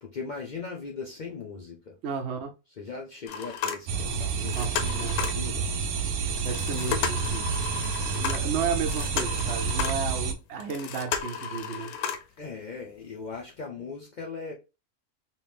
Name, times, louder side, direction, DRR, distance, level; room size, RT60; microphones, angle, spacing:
voice 1, 0.0-1.9 2.8-5.6 12.4-14.5, left 4 dB, 65° left, 0.4 m, -39 dB
voice 2, 2.0-2.5 4.5-5.2 6.4-7.6 7.9-11.9, right 5 dB, 60° right, 0.8 m, -33 dB
sound 1, 3.3-4.2 4.5-5.5 6.4-10.1 10.6-12.4 12.8-12.9 13.3-13.4, left 7 dB, 90° left, 1.1 m, -33 dB
sound 2, 3.9-10.3, right 5 dB, 85° right, 1.1 m, -29 dB
3.1 x 2.9 x 3.3 m
omnidirectional pair, 1.5 m